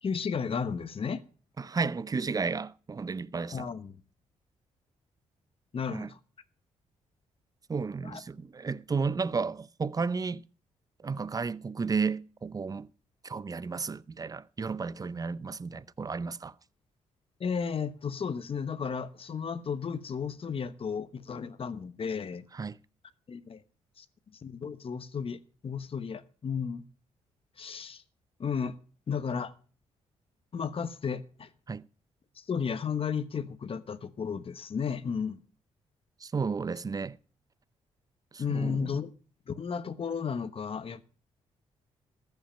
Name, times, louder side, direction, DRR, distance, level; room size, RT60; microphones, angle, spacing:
voice 1, 0.0-1.2 3.5-4.0 5.7-6.2 8.0-8.2 17.4-22.5 23.3-23.6 24.0-24.1 24.3-26.9 27.6-28.0 28.4-28.7 29.1-29.5 30.5-31.5 32.4-35.4 38.4-39.1 39.5-41.0, left 6 dB, 50° left, 1.1 m, -33 dB
voice 2, 1.6-3.7 5.9-6.1 7.7-10.4 11.0-12.9 13.2-16.5 22.5-22.8 31.7-31.8 36.2-37.2 38.3-39.0, right 4 dB, 30° right, 0.6 m, -33 dB
14.0 x 5.8 x 8.7 m
supercardioid pair, 65°, 13 cm